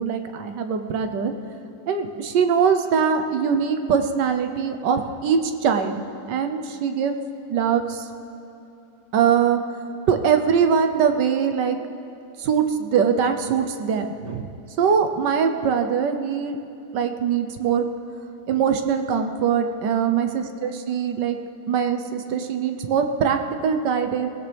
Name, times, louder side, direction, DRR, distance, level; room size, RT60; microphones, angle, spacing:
voice 1, 0.0-1.3 1.9-7.1 7.5-8.1 9.1-9.6 10.1-11.8 12.4-14.5 14.8-16.6 16.9-17.9 18.5-21.4 21.7-24.3, right 7 dB, 85° right, 7 dB, 1.5 m, -22 dB
22.0 x 16.5 x 3.5 m, 2.8 s
omnidirectional pair, 1.8 m